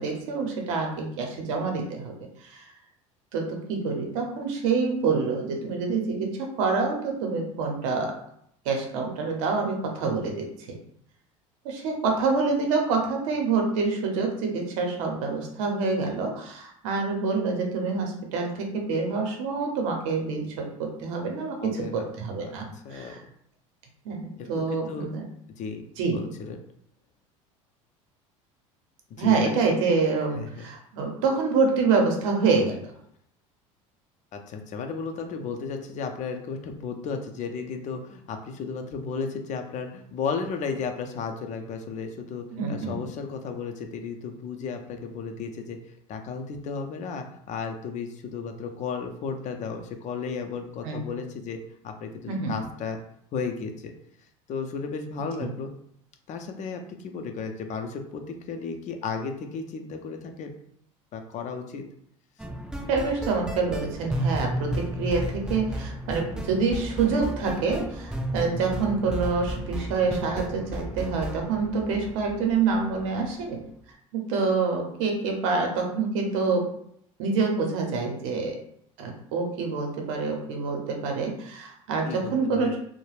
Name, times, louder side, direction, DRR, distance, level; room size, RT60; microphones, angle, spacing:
voice 1, 0.0-2.1 2.4-2.7 3.3-8.1 8.6-10.8 11.6-23.2 24.0-25.2 26.0-26.2 29.2-32.9 42.5-43.0 50.8-51.0 52.3-52.6 55.4-55.5 62.9-73.7 74.1-76.7 77.2-78.6 79.0-82.8, right 4 dB, 75° right, 2 dB, 0.7 m, -27 dB
voice 2, 21.6-22.1 22.4-22.5 22.8-23.1 24.4-25.1 25.6-25.9 26.1-26.6 29.1-29.5 30.3-30.7 34.3-45.8 46.1-51.6 51.8-53.0 53.3-53.9 54.5-55.7 56.3-60.5 61.1-61.8 82.1-82.8, left 5 dB, 45° left, 5 dB, 0.5 m, -34 dB
sound 1, 62.4-73.3, right 1 dB, 5° right, 0.4 m, -33 dB
2.3 x 2.1 x 3.2 m, 0.69 s
hypercardioid pair, 85°, 17 cm